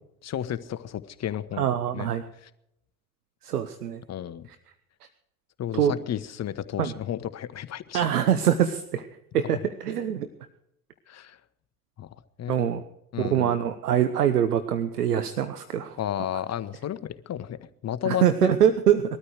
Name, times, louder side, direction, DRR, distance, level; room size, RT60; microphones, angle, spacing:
voice 1, 0.2-1.7 1.9-2.1 2.4-2.5 4.1-4.5 5.6-8.1 11.1-11.4 12.0-12.1 12.4-12.7 13.1-13.6 16.0-18.2, left 10 dB, 35° left, 1.1 m, -32 dB
voice 2, 1.6-2.2 3.4-4.0 5.8-5.9 6.8-6.9 7.9-9.1 9.3-10.3 12.5-12.8 13.2-16.0 18.1-19.0, right 9 dB, 85° right, 1.0 m, -24 dB
21.0 x 13.0 x 4.8 m
hypercardioid pair, 70°, 45 cm